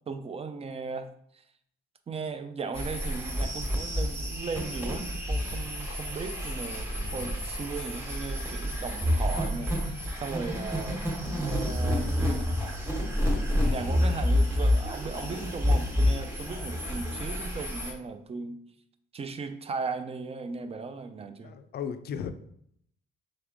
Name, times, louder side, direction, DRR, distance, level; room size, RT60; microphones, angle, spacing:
voice 1, 0.1-1.1 1.3-1.4 2.1-11.1 11.3-12.5 13.7-18.6 19.1-21.6, right 4 dB, 30° right, 9 dB, 0.4 m, -37 dB
sound 1, 2.7-17.9, left 1 dB, 10° right, 1.2 m, -29 dB
voice 2, 6.9-7.4 21.4-22.3, left 7 dB, 55° left, 11 dB, 0.4 m, -37 dB
3.4 x 3.3 x 3.7 m, 0.69 s
cardioid pair, 90°, 20 cm